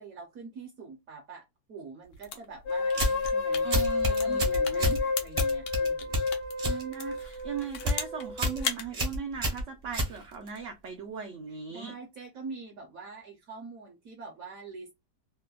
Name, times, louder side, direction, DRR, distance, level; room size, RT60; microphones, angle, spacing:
voice 1, 0.0-3.7 4.1-6.2 11.5-14.9, right 4 dB, 65° right, 0.9 m, -45 dB
sound 1, 2.0-6.5 6.9-8.3 8.6-8.9, left 7 dB, 90° left, 1.3 m, -37 dB
sound 2, 2.7-8.7, left 4 dB, 60° left, 0.7 m, -30 dB
sound 3, 2.9-3.3 3.7-5.0 5.4-6.8 7.1-7.5 7.7-8.0 8.4-8.6 8.9-10.6, equal, 40° right, 0.5 m, -29 dB
voice 2, 3.6-5.0 6.6-11.9, right 6 dB, 85° right, 0.6 m, -38 dB
3.2 x 2.1 x 2.2 m
omnidirectional pair, 1.8 m